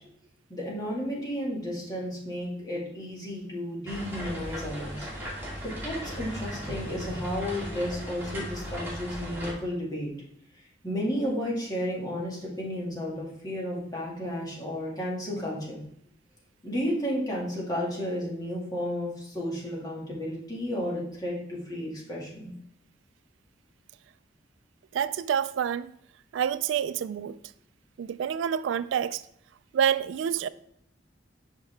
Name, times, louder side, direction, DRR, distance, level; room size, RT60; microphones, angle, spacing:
voice 1, 0.5-5.1 5.4-10.1 10.8-15.8 16.6-22.5, equal, 20° left, 2.0 m, -32 dB
sound 1, 3.9-9.5, equal, 10° right, 2.1 m, -37 dB
voice 2, 24.9-25.9 26.3-27.4 28.0-29.2 29.7-30.5, right 8 dB, 85° right, 0.3 m, -27 dB
5.5 x 5.5 x 3.3 m
head